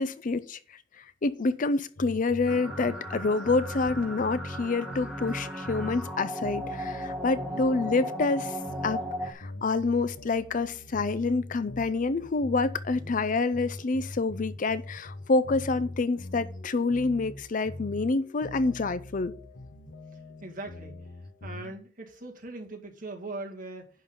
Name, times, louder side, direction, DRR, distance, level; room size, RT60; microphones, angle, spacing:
voice 1, 0.0-19.3, left 3 dB, 45° left, 0.5 m, -28 dB
sound 1, 2.0-21.7, left 1 dB, 75° left, 1.2 m, -43 dB
sound 2, 2.5-9.3, equal, 5° right, 2.1 m, -36 dB
voice 2, 7.3-7.6 12.9-13.2 20.4-21.0 21.4-23.9, right 2 dB, 50° right, 2.1 m, -41 dB
11.0 x 3.9 x 7.1 m
head